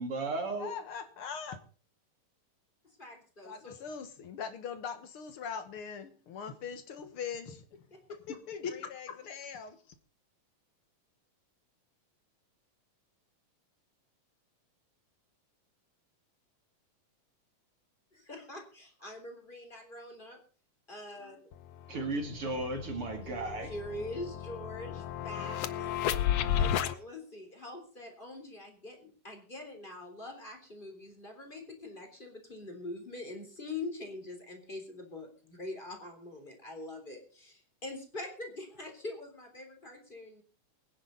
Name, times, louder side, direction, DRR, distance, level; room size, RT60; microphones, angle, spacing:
voice 1, 0.0-0.7 21.9-23.7, right 2 dB, 45° right, 2.7 m, -35 dB
voice 2, 0.6-1.6 3.4-7.8 8.1-9.8, left 6 dB, 55° left, 1.8 m, -41 dB
voice 3, 2.8-3.8 7.9-8.0 18.1-20.4 20.9-21.4 23.2-25.9 26.6-40.4, left 2 dB, 15° left, 3.5 m, -44 dB
sound 1, 21.5-21.6 21.9-26.9, left 10 dB, 70° left, 1.5 m, -33 dB
23.0 x 10.0 x 4.0 m
omnidirectional pair, 3.8 m